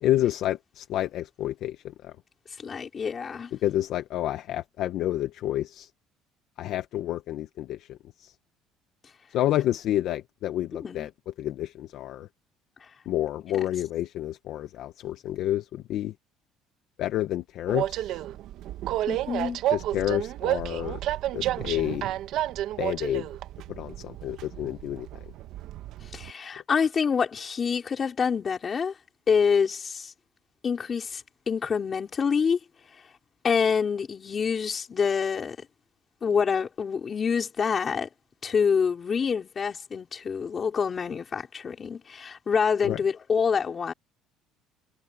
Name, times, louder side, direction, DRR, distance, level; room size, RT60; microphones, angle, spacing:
voice 1, 0.0-2.1 3.5-5.9 6.6-8.3 9.3-11.1 11.4-12.3 13.1-16.1 17.0-18.2 19.7-21.0 21.3-22.0 22.8-23.3 23.7-25.1 42.8-43.0, left 13 dB, 60° left, 1.0 m, -29 dB
voice 2, 2.6-3.5 10.8-11.1 19.1-19.6 26.1-28.9 29.3-30.1 30.6-32.6 33.4-35.6 36.2-38.1 38.4-43.9, left 6 dB, 30° left, 4.5 m, -26 dB
Train, 17.7-26.3, right 13 dB, 60° right, 1.3 m, -31 dB
cardioid pair, 145°, 0 cm